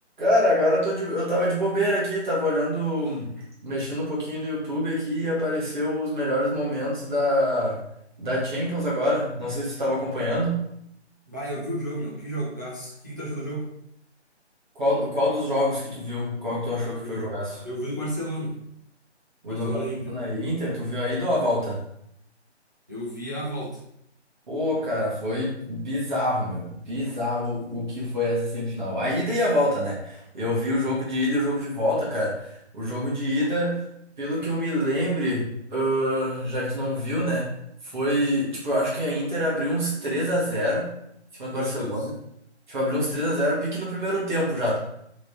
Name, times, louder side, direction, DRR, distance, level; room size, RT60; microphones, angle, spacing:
voice 1, 0.2-3.3 3.6-7.8 8.2-10.6 14.7-17.6 19.4-21.8 24.5-33.8 34.2-37.5 37.8-40.9 41.4-42.1 42.7-44.8, equal, 40° right, -6 dB, 1.7 m, -26 dB
voice 2, 11.3-13.7 17.0-17.3 17.6-18.5 19.5-20.0 22.9-23.8 41.5-41.9, right 1 dB, 15° right, -6 dB, 0.5 m, -32 dB
4.8 x 3.5 x 2.8 m, 0.74 s
figure-of-eight pair, 160°, 35 cm